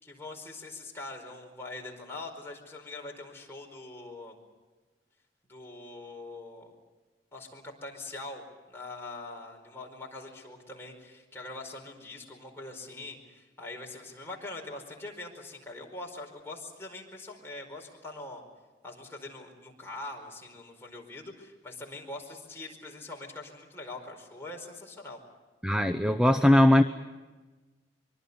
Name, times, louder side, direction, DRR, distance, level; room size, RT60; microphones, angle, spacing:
voice 1, 0.0-4.4 5.5-6.7 7.3-8.4 8.7-18.4 18.8-25.2, left 2 dB, 15° left, 0 dB, 4.8 m, -43 dB
voice 2, 25.6-26.8, left 1 dB, 5° right, 8 dB, 0.8 m, -20 dB
25.0 x 23.5 x 7.0 m, 1.3 s
head